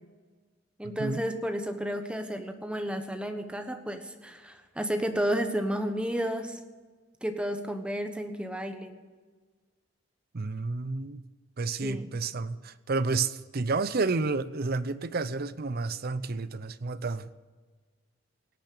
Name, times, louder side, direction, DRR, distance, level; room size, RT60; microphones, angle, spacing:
voice 1, 0.8-6.6 7.2-9.0 11.8-12.1, equal, 5° right, 1.2 m, -32 dB
voice 2, 10.3-11.2 11.6-17.3, right 3 dB, 50° right, 0.6 m, -30 dB
18.0 x 8.8 x 6.8 m
head